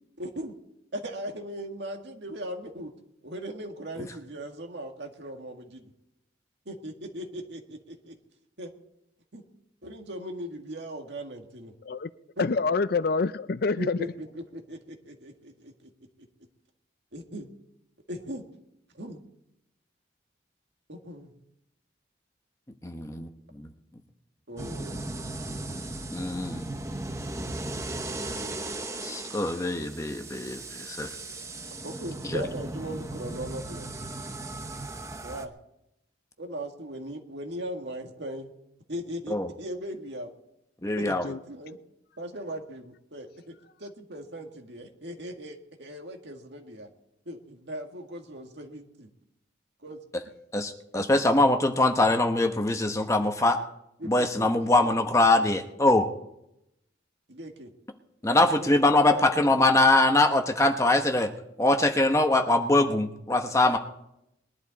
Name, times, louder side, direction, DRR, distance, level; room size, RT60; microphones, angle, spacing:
voice 1, 0.2-0.5 0.9-2.9 3.2-5.9 6.7-8.2 8.6-8.7 9.3-9.4 9.8-11.7 12.4-12.5 13.8-15.9 17.1-17.5 18.1-18.4 18.9-19.2 20.9-21.3 24.5-25.1 28.0-28.6 31.8-33.9 35.2-35.5 36.4-38.5 38.9-40.3 41.0-41.8 42.2-46.9 47.3-49.1 49.8-50.0 50.9-51.2 54.0-55.1 55.4-55.5 57.3-57.7 58.6-59.3 62.3-62.4, right 1 dB, 65° right, 3 dB, 1.9 m, -39 dB
voice 2, 12.4-14.0 41.2-41.4, left 4 dB, 55° left, 14 dB, 0.5 m, -26 dB
voice 3, 22.8-23.3 23.6-23.7 26.1-26.7 29.0-31.1 32.3-32.4 39.3-39.5 40.8-41.2 50.5-53.6 54.0-56.1 58.2-61.3 61.6-63.8, left 2 dB, 15° left, 5 dB, 1.0 m, -23 dB
sound 1, 24.6-35.5, right 2 dB, 15° right, 0.9 m, -37 dB
21.0 x 11.5 x 4.1 m, 0.82 s
head